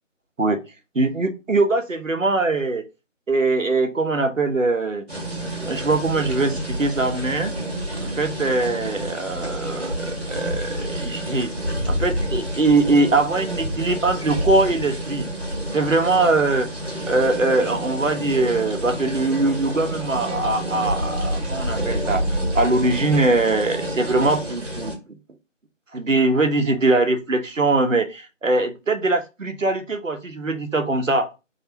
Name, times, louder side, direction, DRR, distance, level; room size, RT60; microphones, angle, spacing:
voice 1, 0.9-2.9 3.3-5.1 5.6-7.5 8.0-11.5 11.9-15.3 15.7-16.7 17.1-22.2 22.5-24.9 25.9-31.3, right 2 dB, 80° right, 6 dB, 1.0 m, -22 dB
sound 1, 5.1-25.0, equal, 55° right, 1.3 m, -28 dB
4.4 x 3.3 x 2.8 m, 0.27 s
figure-of-eight pair, 175°, 38 cm